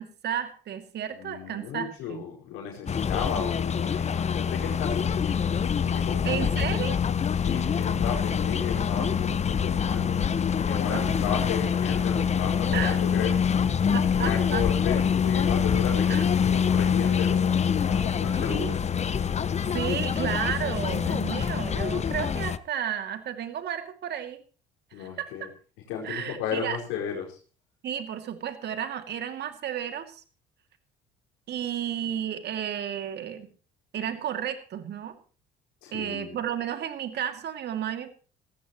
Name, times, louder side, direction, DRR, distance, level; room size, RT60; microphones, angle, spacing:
voice 1, 0.0-2.2 6.2-7.0 10.9-11.2 12.7-13.0 13.9-14.7 16.1-16.2 18.4-18.8 19.7-24.4 24.9-25.3 26.0-26.8 27.8-30.2 31.5-33.5 33.9-35.1 35.9-38.1, right 9 dB, 60° right, 7 dB, 2.5 m, -32 dB
voice 2, 1.2-5.4 5.8-6.8 7.4-10.2 10.6-13.4 14.2-18.8 24.9-25.5 25.9-27.4 35.8-36.3, left 7 dB, 80° left, 0 dB, 4.9 m, -34 dB
sound 1, 2.9-22.6, left 7 dB, 35° left, 0.9 m, -25 dB
19.0 x 15.0 x 3.0 m, 0.36 s
supercardioid pair, 65°, 20 cm